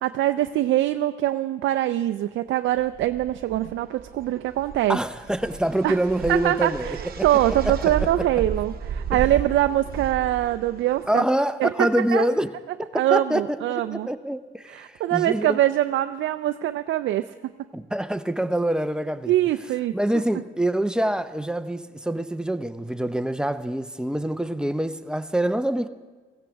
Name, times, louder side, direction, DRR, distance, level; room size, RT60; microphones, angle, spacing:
voice 1, 0.0-5.0 5.8-6.0 6.3-11.2 11.6-12.3 12.9-14.1 14.7-17.2 19.3-19.9, right 13 dB, 70° right, 0.4 m, -23 dB
sound 1, 2.8-11.1, right 7 dB, 50° right, 0.9 m, -34 dB
voice 2, 4.9-7.3 7.6-8.3 9.1-9.2 11.1-12.5 13.1-15.6 17.7-19.3 19.9-25.9, right 1 dB, 5° right, 0.5 m, -25 dB
16.5 x 15.5 x 3.5 m
cardioid pair, 90°, 20 cm